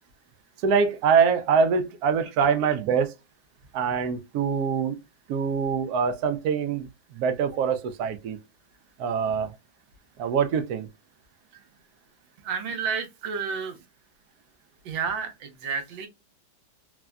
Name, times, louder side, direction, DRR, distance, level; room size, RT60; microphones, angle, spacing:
voice 1, 0.6-3.1 3.7-5.0 5.3-6.9 7.1-8.4 9.0-9.5 10.2-10.9, right 6 dB, 70° right, 0.9 m, -24 dB
voice 2, 12.4-13.8 14.8-16.1, right 6 dB, 90° right, 1.5 m, -31 dB
3.5 x 2.1 x 2.3 m
omnidirectional pair, 2.0 m